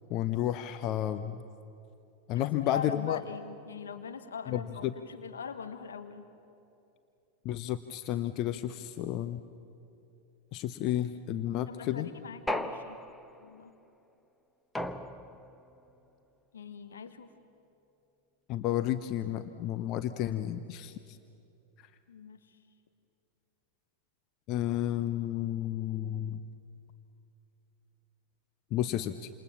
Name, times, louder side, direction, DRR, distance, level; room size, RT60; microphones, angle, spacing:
voice 1, 0.1-1.4 2.3-3.2 4.5-4.9 7.4-9.4 10.5-12.1 18.5-20.9 24.5-26.4 28.7-29.3, left 12 dB, 40° left, 11 dB, 0.8 m, -31 dB
voice 2, 2.3-6.2 11.7-13.0 13.4-13.7 16.5-17.3 22.1-22.4, left 6 dB, 65° left, 9 dB, 1.3 m, -42 dB
sound 1, 12.5-13.5 14.8-15.6, left 1 dB, 5° left, 1.1 m, -36 dB
28.5 x 27.5 x 7.2 m, 2.8 s
figure-of-eight pair, 90°, 0 cm